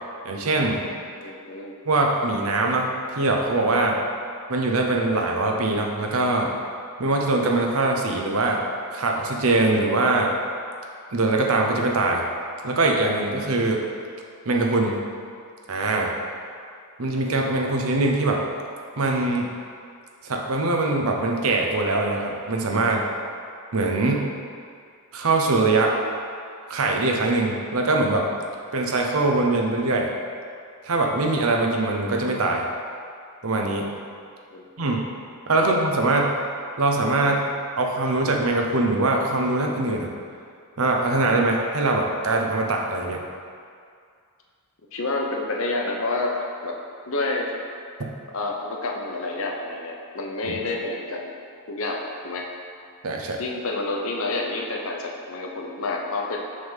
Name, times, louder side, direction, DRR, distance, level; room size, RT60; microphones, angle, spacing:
voice 1, 0.2-0.8 1.9-2.9 3.1-4.0 4.5-6.5 7.0-8.6 8.9-10.3 11.1-12.2 12.6-13.8 14.5-14.9 15.7-16.1 17.0-18.4 19.0-19.5 20.2-23.1 23.7-24.3 25.1-25.9 26.7-28.2 28.7-30.1 30.8-32.7 33.4-33.9 34.8-35.0 35.5-36.3 36.8-37.4 37.8-40.1 40.8-43.2 50.4-50.6 53.0-53.4, right 2 dB, 70° right, 1 dB, 0.8 m, -22 dB
voice 2, 1.2-1.7 34.5-34.7 35.5-35.7 44.9-46.3 46.6-46.8 47.1-47.5 48.3-51.3 51.7-52.5 53.4-56.4, left 2 dB, 65° left, 0 dB, 0.8 m, -29 dB
6.4 x 3.6 x 5.7 m, 2.2 s
head